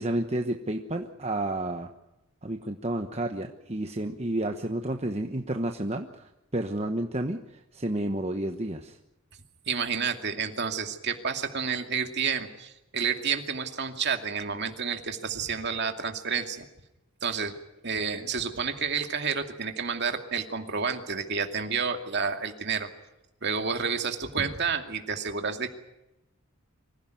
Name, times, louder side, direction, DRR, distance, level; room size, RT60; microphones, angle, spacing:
voice 1, 0.0-1.9 2.4-9.0, right 1 dB, 30° right, 4 dB, 1.1 m, -31 dB
voice 2, 9.7-16.6 17.2-17.5 17.8-22.9 23.4-25.7, right 6 dB, 50° right, 5 dB, 2.5 m, -30 dB
25.0 x 16.0 x 9.3 m, 0.92 s
head